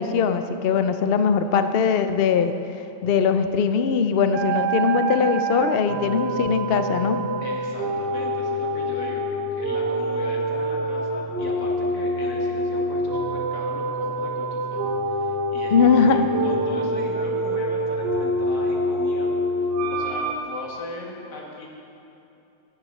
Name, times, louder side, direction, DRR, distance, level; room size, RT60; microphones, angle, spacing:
voice 1, 0.0-2.5 3.0-7.2 15.7-16.3, left 6 dB, 60° left, 9 dB, 0.6 m, -21 dB
sound 1, 4.3-20.4, right 1 dB, 75° right, 1.6 m, -26 dB
voice 2, 7.4-19.3 19.9-21.7, left 2 dB, 85° left, -1 dB, 2.5 m, -38 dB
15.5 x 7.4 x 6.7 m, 2.8 s
omnidirectional pair, 1.8 m